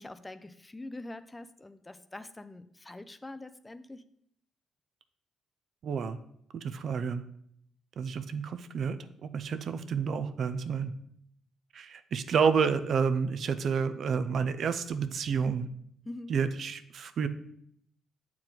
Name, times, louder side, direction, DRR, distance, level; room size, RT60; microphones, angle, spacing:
voice 1, 0.0-4.0 16.1-16.4, left 2 dB, 15° left, 12 dB, 0.4 m, -44 dB
voice 2, 5.8-6.2 6.5-7.2 8.0-10.9 11.7-15.7 16.3-17.3, right 6 dB, 60° right, 10 dB, 0.5 m, -30 dB
7.4 x 4.5 x 3.9 m, 0.70 s
cardioid pair, 90°, 0 cm